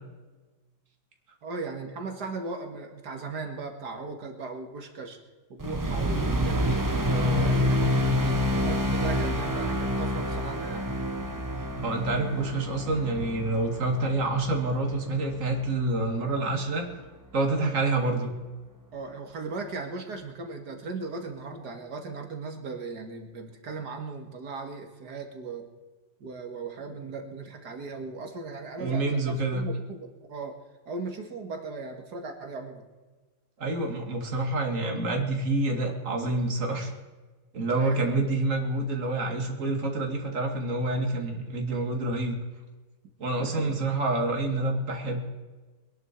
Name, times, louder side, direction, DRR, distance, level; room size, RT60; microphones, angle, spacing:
voice 1, 1.4-5.2 5.5-6.9 7.4-10.9 16.3-16.4 17.6-17.7 18.9-25.7 26.2-30.6 30.9-32.9 37.7-38.3 43.4-43.8, right 4 dB, 55° right, 4 dB, 2.3 m, -37 dB
sound 1, 5.6-16.1, equal, 20° right, 0.5 m, -28 dB
voice 2, 7.1-7.5 11.7-16.8 17.3-18.3 28.8-29.7 33.6-36.9 37.5-42.4 43.2-45.2, right 2 dB, 40° right, 2 dB, 2.6 m, -27 dB
23.0 x 11.0 x 4.5 m, 1.3 s
omnidirectional pair, 2.1 m